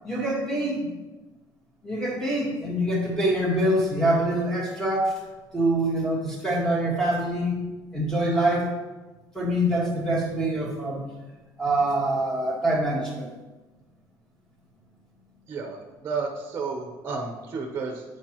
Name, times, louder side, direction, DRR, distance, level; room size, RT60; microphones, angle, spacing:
voice 1, 0.0-0.9 1.8-5.2 5.5-7.6 7.9-8.7 9.3-11.0 11.6-13.3, right 1 dB, 5° left, -4 dB, 1.5 m, -25 dB
voice 2, 15.5-18.0, right 4 dB, 30° right, 1 dB, 0.7 m, -32 dB
8.0 x 4.7 x 3.0 m, 1.2 s
cardioid pair, 150°, 8 cm